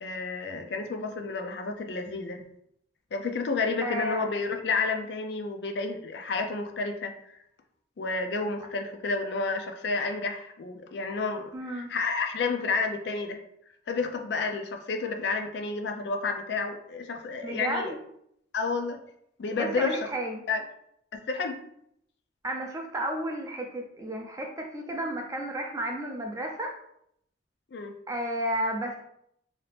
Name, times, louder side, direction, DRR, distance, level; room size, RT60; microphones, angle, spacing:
voice 1, 0.0-2.4 3.1-7.4 8.0-13.4 13.9-17.9 18.5-19.0 19.4-20.0 20.5-20.6 21.3-21.6 27.7-27.9, left 4 dB, 65° left, 5 dB, 0.4 m, -30 dB
voice 2, 3.8-4.3 11.5-11.9 17.4-18.0 19.6-20.4 22.4-26.8 28.1-29.1, right 1 dB, 15° right, 1 dB, 0.4 m, -32 dB
2.8 x 2.4 x 3.3 m, 0.72 s
head